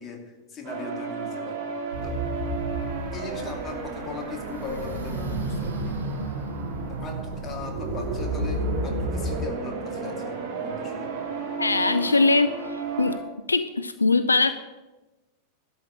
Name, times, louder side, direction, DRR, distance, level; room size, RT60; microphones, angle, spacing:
voice 1, 0.0-1.6 2.0-2.2 3.1-6.0 7.0-11.1, left 4 dB, 25° left, 2 dB, 2.5 m, -39 dB
sound 1, 0.6-13.2, right 5 dB, 50° right, 2.5 m, -33 dB
sound 2, 1.9-9.4, right 1 dB, 70° right, 2.0 m, -32 dB
voice 2, 11.6-13.2 13.5-14.5, left 3 dB, 80° left, 12 dB, 0.4 m, -22 dB
12.0 x 5.6 x 8.8 m, 1.1 s
figure-of-eight pair, 90°, 0 cm